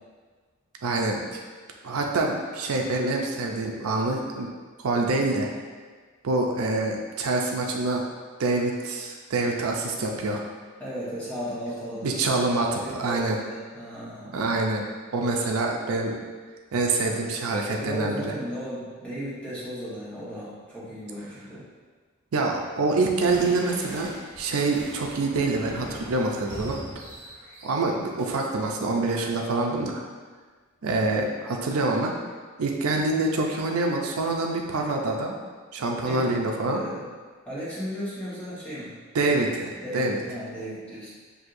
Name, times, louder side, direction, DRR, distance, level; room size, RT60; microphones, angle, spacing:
voice 1, 0.8-1.4 1.8-4.5 4.8-5.5 6.2-8.0 8.4-10.4 12.0-13.4 14.3-14.8 15.1-16.2 16.7-18.2 22.3-26.8 27.6-30.0 30.8-32.1 32.6-35.3 35.7-36.8 39.1-40.2, right 2 dB, 85° right, 1 dB, 0.5 m, -26 dB
voice 2, 10.8-12.2 12.7-14.4 17.0-17.3 17.8-21.6 30.0-30.1 36.0-37.0 37.5-38.9 39.8-41.1, equal, 5° left, -10 dB, 1.2 m, -35 dB
sound 1, 23.2-28.3, right 1 dB, 60° right, 1.2 m, -41 dB
6.2 x 2.7 x 2.6 m, 1.5 s
head